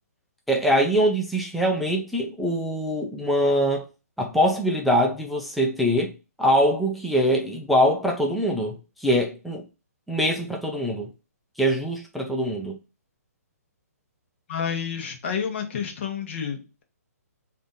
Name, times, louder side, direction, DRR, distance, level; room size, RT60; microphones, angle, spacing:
voice 1, 0.5-3.9 4.2-6.1 6.4-9.6 10.1-11.1 11.6-12.8, equal, ahead, 0.4 m, -23 dB
voice 2, 14.5-16.8, left 7 dB, 45° left, 1.0 m, -30 dB
3.4 x 2.6 x 3.9 m
hypercardioid pair, 155°, 9 cm